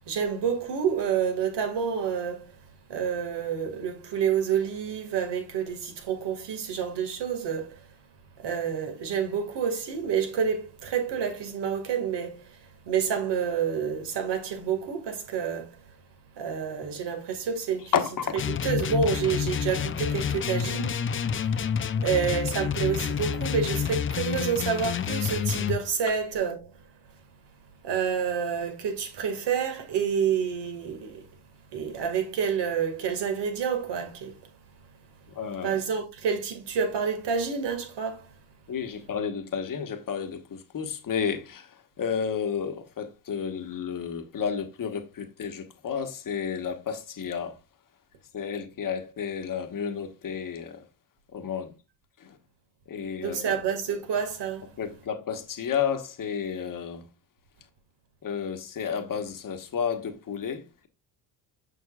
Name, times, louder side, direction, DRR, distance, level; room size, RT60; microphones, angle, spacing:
voice 1, 0.1-2.5 2.9-7.7 8.4-12.4 12.9-15.7 16.4-17.9 18.5-21.0 22.0-26.6 27.8-31.2 31.7-34.3 35.6-38.2 53.2-54.7, right 7 dB, 60° right, 2.0 m, -28 dB
voice 2, 17.9-18.4 35.3-35.8 38.7-47.6 48.3-50.9 51.3-51.8 52.2-52.4 52.9-53.6 54.8-57.1 58.2-60.9, left 7 dB, 45° left, 1.3 m, -31 dB
sound 1, 18.3-25.8, left 7 dB, 25° left, 0.5 m, -28 dB
6.6 x 6.1 x 2.4 m
supercardioid pair, 65°, 46 cm